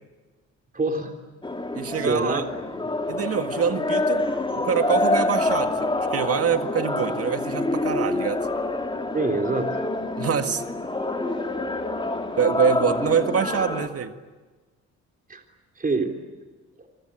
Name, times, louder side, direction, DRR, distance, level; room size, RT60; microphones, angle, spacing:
voice 1, 0.7-1.1 1.9-2.4 9.1-9.8 15.3-15.4 15.8-16.1, right 3 dB, 30° right, 3 dB, 3.5 m, -25 dB
sound 1, 1.4-13.9, left 2 dB, 15° left, 3.1 m, -27 dB
voice 2, 1.7-2.4 3.1-4.2 4.5-8.4 10.2-10.6 12.4-14.1, right 7 dB, 50° right, 8 dB, 1.9 m, -25 dB
26.5 x 23.5 x 8.9 m, 1.3 s
cardioid pair, 90°, 30 cm